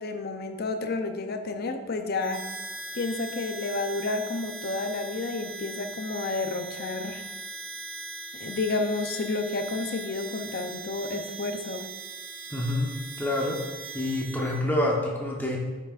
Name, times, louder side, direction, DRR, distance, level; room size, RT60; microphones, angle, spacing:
voice 1, 0.0-2.4 2.9-7.2 8.4-11.8, left 3 dB, 45° left, 6 dB, 0.6 m, -30 dB
Harmonica, 2.2-14.6, right 3 dB, 40° right, 0.9 m, -40 dB
voice 2, 12.5-13.6 13.9-15.6, left 1 dB, 10° left, -2 dB, 1.0 m, -27 dB
9.5 x 5.9 x 2.5 m, 1.3 s
head